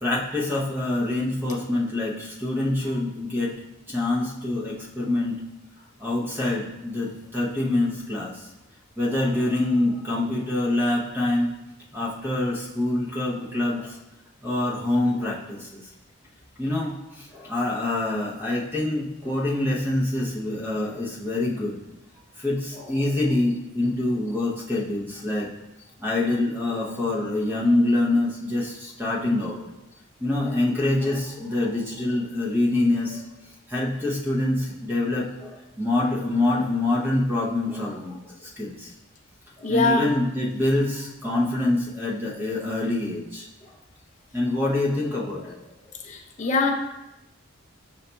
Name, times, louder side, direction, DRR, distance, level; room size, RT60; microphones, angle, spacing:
voice 1, 0.0-3.6 3.9-5.4 6.0-8.5 9.0-11.5 11.9-14.0 14.4-15.8 16.6-21.8 22.4-25.5 26.0-29.6 30.2-33.3 33.7-38.9 39.6-43.7 44.3-45.7 46.4-46.5, left 2 dB, 10° right, -4 dB, 0.7 m, -25 dB
voice 2, 39.6-40.1 46.0-46.7, left 3 dB, 35° left, 2 dB, 0.5 m, -23 dB
5.6 x 4.0 x 2.2 m, 0.95 s
head